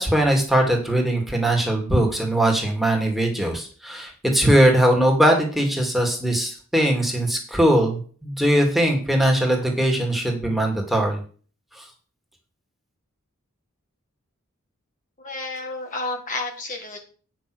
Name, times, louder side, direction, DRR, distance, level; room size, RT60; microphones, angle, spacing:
voice 1, 0.0-11.2 11.8-11.9, right 1 dB, ahead, 0 dB, 2.4 m, -20 dB
voice 2, 15.2-17.0, left 3 dB, 40° left, 2 dB, 1.7 m, -31 dB
9.6 x 6.2 x 6.3 m, 0.41 s
head